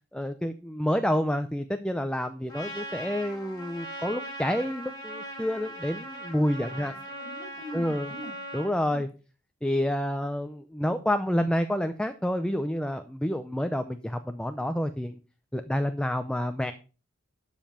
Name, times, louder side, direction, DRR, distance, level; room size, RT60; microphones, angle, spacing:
voice 1, 0.1-6.9 7.7-8.1 8.5-9.1 9.6-15.2 15.5-16.7, equal, 5° left, 8 dB, 0.5 m, -28 dB
Trumpet, 2.5-8.7, right 1 dB, 20° left, 4.2 m, -40 dB
voice 2, 6.7-8.3, equal, 40° left, 2 dB, 3.2 m, -43 dB
12.0 x 5.4 x 5.7 m, 0.35 s
head